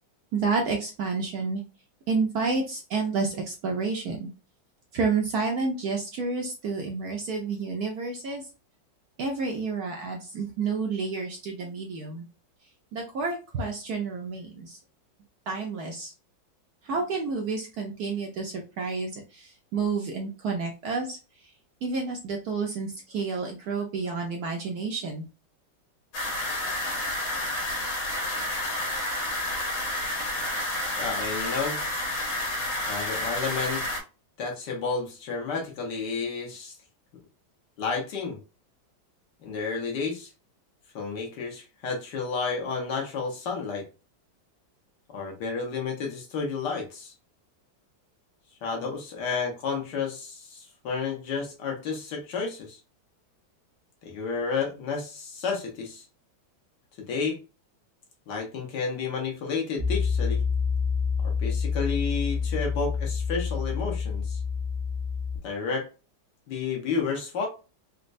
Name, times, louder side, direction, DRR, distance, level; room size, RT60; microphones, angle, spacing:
voice 1, 0.3-1.6 2.1-4.3 4.9-8.4 9.2-12.3 12.9-14.8 15.5-16.1 16.8-21.2 21.8-25.2, right 4 dB, 65° right, 1 dB, 1.0 m, -30 dB
sound 1, 26.1-34.0, left 1 dB, 85° left, 1.8 m, -30 dB
voice 2, 31.0-31.8 32.9-33.8 34.4-36.7 37.8-38.4 39.4-40.3 40.9-43.8 45.1-47.1 48.6-52.8 54.0-56.0 57.1-57.4 58.3-60.4 61.2-64.4 65.4-65.9 66.5-67.5, left 5 dB, 65° left, 1 dB, 1.5 m, -31 dB
Piano, 59.8-65.4, left 5 dB, 85° right, 0.5 m, -27 dB
4.1 x 2.2 x 2.5 m, 0.31 s
omnidirectional pair, 2.1 m